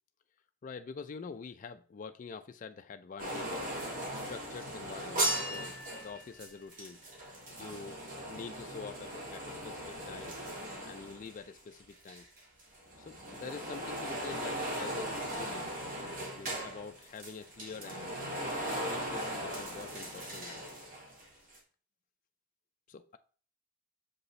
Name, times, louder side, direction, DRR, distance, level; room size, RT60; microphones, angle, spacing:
voice 1, 0.6-3.7 4.1-7.0 7.6-8.0 8.3-10.4 10.8-12.3 13.0-15.7 16.4-18.2 18.8-20.6 22.9-23.2, left 5 dB, 40° left, 0.3 m, -46 dB
sound 1, 3.2-11.8 12.1-21.3 21.5-21.6, right 1 dB, 40° right, 1.8 m, -38 dB
6.7 x 5.2 x 3.1 m
head